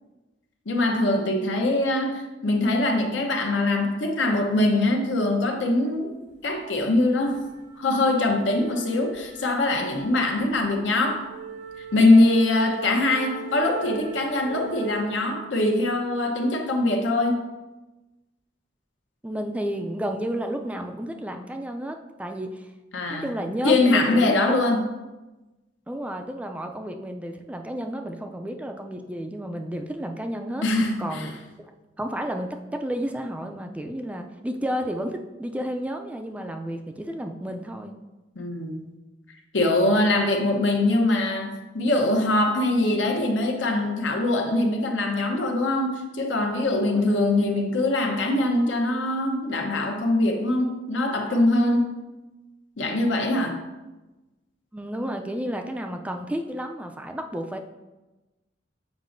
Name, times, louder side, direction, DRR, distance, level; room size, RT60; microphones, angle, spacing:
voice 1, 0.7-6.1 6.4-7.4 7.8-11.3 11.9-17.4 22.9-23.3 23.6-24.8 30.6-31.3 38.4-38.8 39.5-51.9 52.8-53.6, left 2 dB, 85° left, 2 dB, 0.9 m, -22 dB
sound 1, 6.3-6.5 6.8-15.1, right 6 dB, 65° right, 0.9 m, -40 dB
voice 2, 19.2-22.7 23.1-24.8 25.9-30.6 31.0-31.3 32.0-38.0 46.8-47.2 54.7-57.6, equal, 5° right, 4 dB, 0.3 m, -32 dB
7.3 x 5.0 x 2.6 m, 1.1 s
head